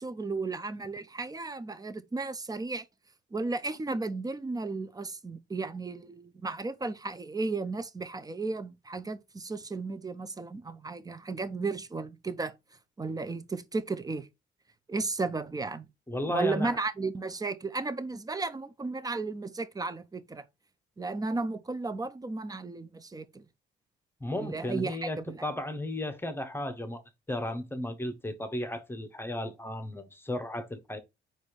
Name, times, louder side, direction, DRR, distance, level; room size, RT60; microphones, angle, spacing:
voice 1, 0.0-2.8 3.3-12.5 13.0-14.3 14.9-15.9 16.3-20.4 21.0-23.4 24.3-25.5, right 3 dB, 20° right, 0.5 m, -34 dB
voice 2, 16.1-16.8 24.2-27.0 27.3-31.0, left 1 dB, 10° left, 0.8 m, -34 dB
4.2 x 2.5 x 4.7 m
cardioid pair, 90°, 20 cm